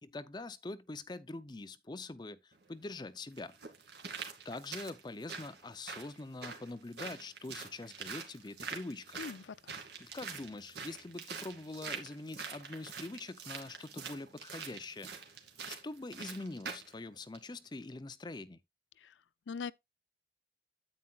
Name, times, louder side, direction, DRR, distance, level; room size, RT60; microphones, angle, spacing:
voice 1, 0.0-3.6 4.4-9.2 10.0-15.1 15.7-18.6, left 2 dB, 25° left, 0.5 m, -44 dB
sound 1, 2.5-2.6 3.4-16.9 17.3-17.4, right 5 dB, 65° right, 2.2 m, -45 dB
voice 2, 9.2-9.7 19.0-19.1 19.5-19.7, left 5 dB, 80° left, 0.5 m, -41 dB
9.4 x 9.0 x 2.3 m
head